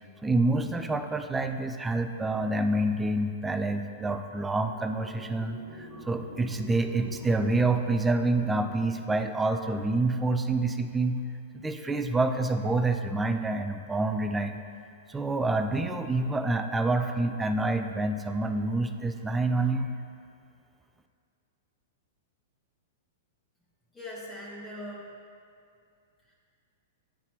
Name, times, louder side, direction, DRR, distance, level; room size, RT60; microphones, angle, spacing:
voice 1, 0.2-11.2 11.6-14.6 15.1-19.9, right 2 dB, 10° right, 7 dB, 0.4 m, -27 dB
sound 1, 4.6-9.5, left 1 dB, 55° left, 1.1 m, -48 dB
voice 2, 23.9-25.1 26.3-26.4, left 1 dB, 15° left, -7 dB, 1.1 m, -41 dB
9.4 x 4.0 x 3.0 m, 2.4 s
hypercardioid pair, 115°, 0 cm